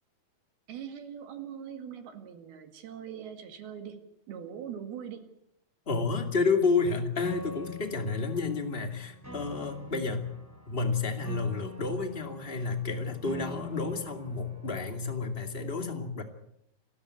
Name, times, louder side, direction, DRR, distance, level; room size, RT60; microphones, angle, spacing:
voice 1, 0.7-5.3, right 8 dB, 75° right, 7 dB, 3.9 m, -42 dB
voice 2, 5.9-10.3 10.7-16.2, left 4 dB, 20° left, 5 dB, 1.8 m, -30 dB
Piano, 7.2-15.2, left 1 dB, 5° left, 3.3 m, -45 dB
29.0 x 13.0 x 8.4 m, 0.77 s
omnidirectional pair, 4.5 m